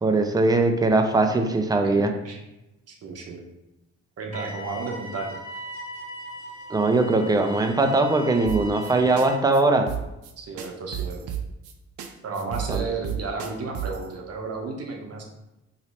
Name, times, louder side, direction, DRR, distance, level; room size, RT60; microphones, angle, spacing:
voice 1, 0.0-2.1 6.7-9.9 12.7-12.8, right 2 dB, 15° right, 5 dB, 0.5 m, -21 dB
voice 2, 2.1-2.4 2.9-3.4 4.2-5.4 10.4-11.2 12.2-15.2, right 3 dB, 55° right, 1 dB, 0.9 m, -33 dB
sound 1, 4.3-9.3, equal, 55° left, 1.5 m, -39 dB
sound 2, 8.5-8.9 9.2-9.3 9.5-9.6 9.9-10.3 10.6-11.7 12.0-12.1 12.3-14.0, right 10 dB, 75° right, 0.6 m, -31 dB
3.0 x 2.9 x 4.2 m, 0.94 s
cardioid pair, 90°, 30 cm